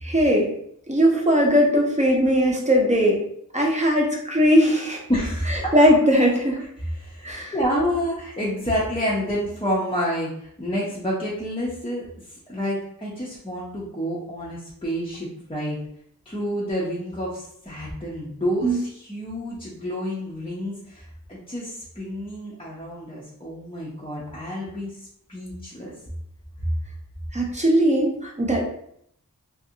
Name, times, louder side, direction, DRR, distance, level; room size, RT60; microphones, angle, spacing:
voice 1, 0.0-0.5 0.9-3.2 3.5-5.0 5.7-6.6 7.2-7.5 18.6-18.8 27.3-28.6, equal, 20° right, -1 dB, 0.7 m, -19 dB
voice 2, 5.1-5.7 6.6-6.7 7.0-15.8 16.3-24.9 25.3-25.9, equal, 15° left, -8 dB, 0.7 m, -29 dB
2.6 x 2.5 x 2.7 m, 0.71 s
wide cardioid pair, 55°, 34 cm